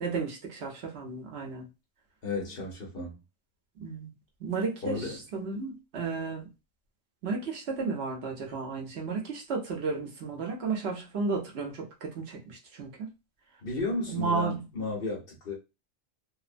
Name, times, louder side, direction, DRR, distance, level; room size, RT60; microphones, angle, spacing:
voice 1, 0.0-1.7 3.8-4.1 4.4-6.5 7.2-13.1 14.1-14.6, right 4 dB, 65° right, 1.0 m, -33 dB
voice 2, 2.2-3.2 4.8-5.2 13.6-15.5, left 3 dB, 55° left, 1.1 m, -33 dB
2.7 x 2.1 x 2.5 m
omnidirectional pair, 1.2 m